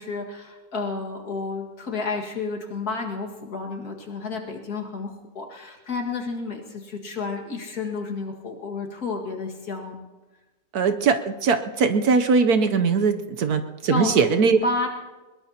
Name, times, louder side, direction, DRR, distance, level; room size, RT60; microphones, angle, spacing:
voice 1, 0.0-10.0 13.9-14.9, left 3 dB, 55° left, 1 dB, 2.4 m, -31 dB
voice 2, 10.7-14.6, right 5 dB, 65° right, 8 dB, 1.2 m, -20 dB
22.0 x 21.5 x 2.9 m, 1.2 s
omnidirectional pair, 1.9 m